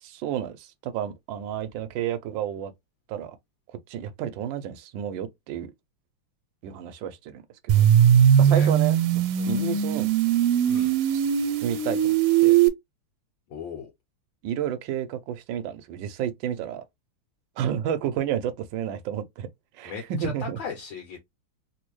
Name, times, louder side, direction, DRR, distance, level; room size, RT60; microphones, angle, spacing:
voice 1, 0.0-2.7 3.1-3.4 3.9-5.7 6.6-7.9 8.4-10.1 11.0-11.3 11.6-12.1 12.4-12.6 14.4-16.8 17.6-19.5 19.7-20.6, right 9 dB, 75° right, 1.2 m, -31 dB
sound 1, 7.7-12.7, right 9 dB, 90° right, 1.5 m, -20 dB
voice 2, 8.4-8.7 9.4-9.6 10.7-10.9 13.5-13.9 19.9-21.2, left 5 dB, 65° left, 1.6 m, -37 dB
3.5 x 2.6 x 3.0 m
omnidirectional pair, 2.4 m